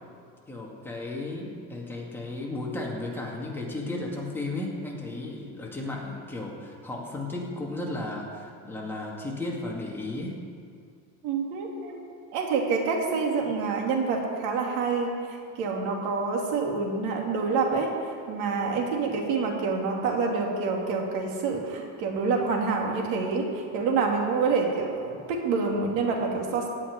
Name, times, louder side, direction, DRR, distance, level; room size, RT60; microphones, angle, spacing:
voice 1, 0.5-10.4, left 2 dB, 5° left, -3 dB, 2.2 m, -34 dB
voice 2, 11.2-12.0 12.3-17.9 18.3-26.7, right 4 dB, 75° right, 1 dB, 2.7 m, -27 dB
17.0 x 5.8 x 9.6 m, 2.2 s
cardioid pair, 145°, 31 cm